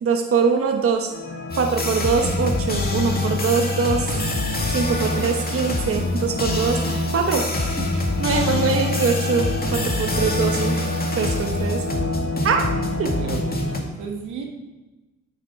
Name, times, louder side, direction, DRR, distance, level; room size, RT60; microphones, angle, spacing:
voice 1, 0.0-1.1 1.6-4.1 4.7-7.4 7.8-10.8 11.2-11.8 12.4-12.6 13.0-13.1, right 5 dB, 50° right, 3 dB, 1.0 m, -23 dB
sound 1, 1.1-13.8, left 2 dB, 50° left, 1.6 m, -30 dB
sound 2, 1.5-13.8, left 2 dB, 30° left, 2.1 m, -25 dB
voice 2, 13.2-14.5, right 5 dB, 85° right, 1 dB, 1.7 m, -34 dB
9.3 x 7.1 x 4.7 m, 1.1 s
cardioid pair, 70°, 30 cm